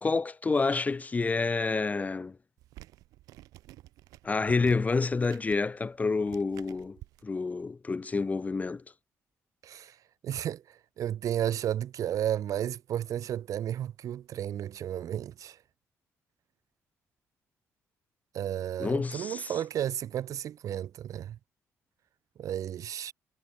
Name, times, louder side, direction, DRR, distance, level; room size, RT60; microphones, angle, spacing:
voice 1, 0.0-2.4 4.2-8.8 18.8-19.5, left 4 dB, 25° left, 0.5 m, -28 dB
sound 1, 2.6-7.2, right 16 dB, 85° right, 1.6 m, -51 dB
voice 2, 9.6-10.0 10.2-15.6 18.3-21.4 22.4-23.1, right 10 dB, 70° right, 1.9 m, -33 dB
cardioid pair, 80°, 6 cm